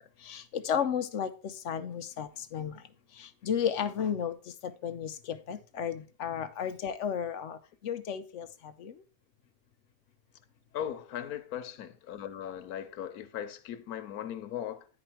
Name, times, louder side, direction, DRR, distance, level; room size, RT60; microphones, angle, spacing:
voice 1, 0.2-2.8 3.1-9.0, left 8 dB, 65° left, 0.9 m, -34 dB
voice 2, 10.7-14.9, left 10 dB, 90° left, 1.2 m, -38 dB
9.6 x 5.0 x 4.5 m
omnidirectional pair, 1.5 m